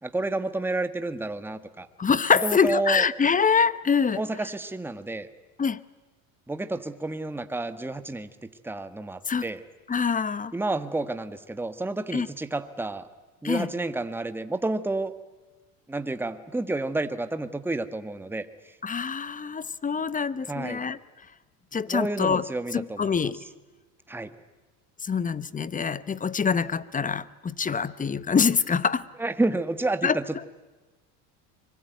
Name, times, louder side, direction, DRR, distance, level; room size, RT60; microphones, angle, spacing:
voice 1, 0.0-1.9 2.4-3.0 4.2-5.3 6.5-9.6 10.5-13.1 13.4-15.1 15.9-18.5 20.5-20.9 21.9-23.1 24.1-24.3 29.2-30.4, right 2 dB, 5° right, 10 dB, 1.4 m, -30 dB
voice 2, 2.0-4.2 5.6-5.8 9.3-9.4 9.9-10.5 12.1-12.3 13.4-13.7 18.8-21.0 21.7-22.5 22.7-23.4 25.0-29.0 30.0-30.2, left 6 dB, 20° left, 18 dB, 0.9 m, -25 dB
25.0 x 23.5 x 9.2 m, 1.2 s
supercardioid pair, 110°, 42 cm